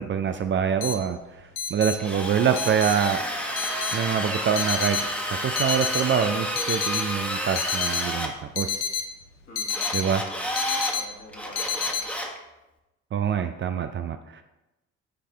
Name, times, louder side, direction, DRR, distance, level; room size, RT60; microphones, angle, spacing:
voice 1, 0.0-3.2 3.9-5.0 5.4-8.8 9.9-10.2 13.1-14.4, right 7 dB, 35° right, 8 dB, 0.4 m, -25 dB
sound 1, 0.8-12.0, left 7 dB, 90° left, 0.6 m, -30 dB
Drill, 2.0-8.3 9.7-10.9 11.3-12.4, equal, 5° left, 1.2 m, -30 dB
voice 2, 9.5-9.9 10.9-12.1, left 2 dB, 45° left, -1 dB, 1.8 m, -46 dB
7.9 x 4.9 x 3.3 m, 1.0 s
figure-of-eight pair, 45°, 35 cm